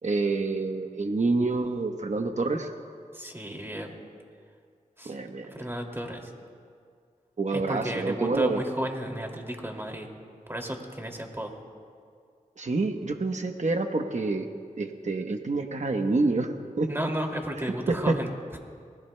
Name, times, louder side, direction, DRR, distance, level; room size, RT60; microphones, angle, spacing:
voice 1, 0.0-2.7 5.0-5.5 7.4-8.6 12.6-14.5 14.8-16.9 17.9-18.2, right 3 dB, 55° right, 5 dB, 1.0 m, -27 dB
voice 2, 3.1-4.0 5.0-5.2 5.5-6.3 7.5-10.1 10.5-11.6 16.9-18.6, equal, 15° right, 2 dB, 2.4 m, -33 dB
26.5 x 20.0 x 2.2 m, 2.2 s
cardioid pair, 45°, 15 cm